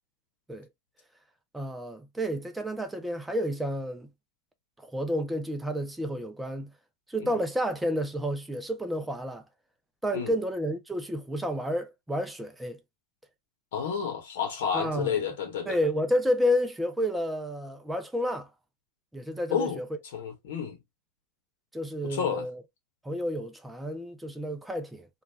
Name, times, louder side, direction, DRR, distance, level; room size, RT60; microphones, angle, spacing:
voice 1, 1.5-4.1 4.8-6.7 7.1-9.4 10.0-12.8 14.7-15.1 15.7-18.5 19.1-19.9 21.7-22.6 23.0-25.1, equal, 5° right, 0.5 m, -30 dB
voice 2, 13.7-15.8 19.5-19.8 20.1-20.8 22.0-22.5, left 7 dB, 55° left, 1.0 m, -30 dB
3.2 x 2.4 x 3.0 m
figure-of-eight pair, 90°, 0 cm